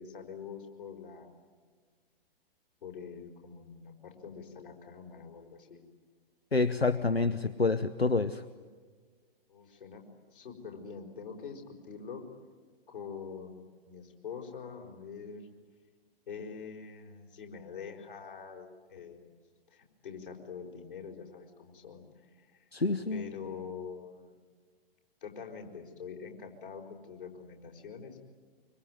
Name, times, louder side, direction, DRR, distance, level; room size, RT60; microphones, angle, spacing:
voice 1, 0.0-1.4 2.8-5.8 9.5-10.0 10.3-12.2 12.9-15.5 16.3-19.3 19.7-22.7 23.1-24.3 25.2-28.2, left 6 dB, 60° left, 1 dB, 5.1 m, -45 dB
voice 2, 6.5-8.4 22.7-23.2, left 3 dB, 90° left, 13 dB, 1.0 m, -28 dB
25.0 x 24.5 x 9.4 m, 1.5 s
figure-of-eight pair, 120°, 30 cm